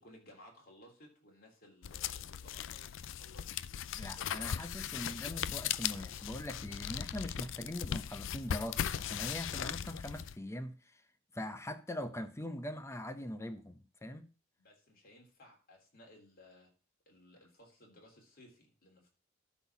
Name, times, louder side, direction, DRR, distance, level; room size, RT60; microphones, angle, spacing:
voice 1, 0.0-3.5 4.2-4.5 14.6-16.7 17.0-19.1, left 1 dB, 50° left, 3.2 m, -59 dB
sound 1, 1.8-10.3, left 9 dB, 65° left, 0.4 m, -38 dB
voice 2, 4.0-11.0 11.3-14.3, left 1 dB, 15° left, 0.6 m, -42 dB
12.0 x 4.1 x 5.9 m
head